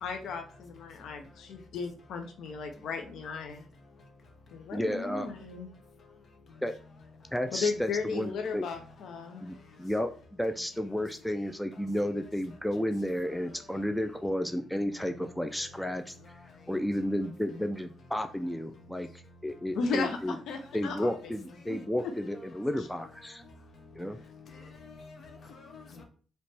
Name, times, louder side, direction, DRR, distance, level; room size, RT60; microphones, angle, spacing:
voice 1, 0.0-3.6 4.5-5.7 7.6-9.4 19.7-21.1 21.7-21.8 22.0-22.1, left 5 dB, 75° left, 0.6 m, -35 dB
voice 2, 4.7-5.3 6.6-6.7 7.3-8.7 9.4-16.3 16.7-20.4 20.7-23.4 24.0-24.2, equal, 5° left, 0.4 m, -32 dB
voice 3, 24.4-26.0, left 4 dB, 50° left, 1.1 m, -49 dB
4.2 x 3.0 x 3.3 m
cardioid pair, 90°, 0 cm